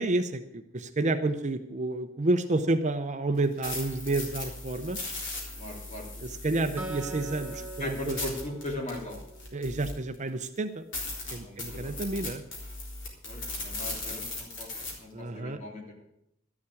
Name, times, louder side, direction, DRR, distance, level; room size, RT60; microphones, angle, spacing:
voice 1, 0.0-5.0 6.2-8.2 9.5-10.8 11.3-12.4 15.1-15.6, right 2 dB, 35° right, 8 dB, 0.7 m, -30 dB
sound 1, 3.4-10.1 10.6-10.7 10.9-14.9, left 2 dB, 60° left, 3.8 m, -38 dB
voice 2, 5.6-6.1 7.8-9.2 11.4-11.9 13.3-14.7 15.0-16.0, left 1 dB, 35° left, 0 dB, 3.0 m, -38 dB
Acoustic guitar, 6.8-10.2, right 3 dB, 10° right, 2.2 m, -43 dB
13.0 x 7.2 x 8.5 m, 0.79 s
head